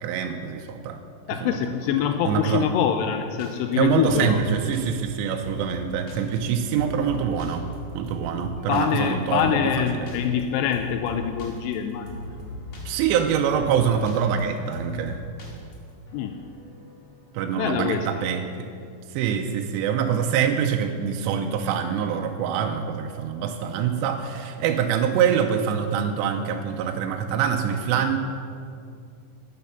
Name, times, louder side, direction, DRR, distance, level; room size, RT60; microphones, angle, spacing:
voice 1, 0.0-1.0 1.4-1.6 2.3-2.7 3.7-7.7 7.9-9.6 10.0-10.1 12.9-15.2 17.3-18.4 19.1-28.2, right 7 dB, 85° right, 4 dB, 2.8 m, -25 dB
voice 2, 1.3-4.4 8.7-12.1 16.1-16.4 17.6-18.2, left 8 dB, 85° left, 7 dB, 2.6 m, -25 dB
sound 1, 3.4-17.6, left 1 dB, 40° left, 2.2 m, -39 dB
13.5 x 9.4 x 5.8 m, 2.3 s
omnidirectional pair, 5.0 m